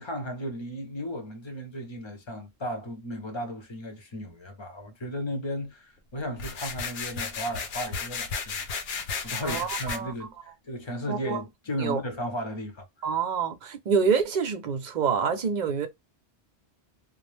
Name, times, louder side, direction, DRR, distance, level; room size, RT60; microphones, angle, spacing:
voice 1, 0.0-8.6 9.0-12.9, equal, 30° left, 0.6 m, -35 dB
sound 1, 6.4-10.0, left 5 dB, 70° left, 0.8 m, -34 dB
voice 2, 9.4-10.1 11.1-11.4 11.8-12.0 13.0-15.9, right 6 dB, 50° right, 0.6 m, -27 dB
2.4 x 2.1 x 3.1 m
omnidirectional pair, 1.1 m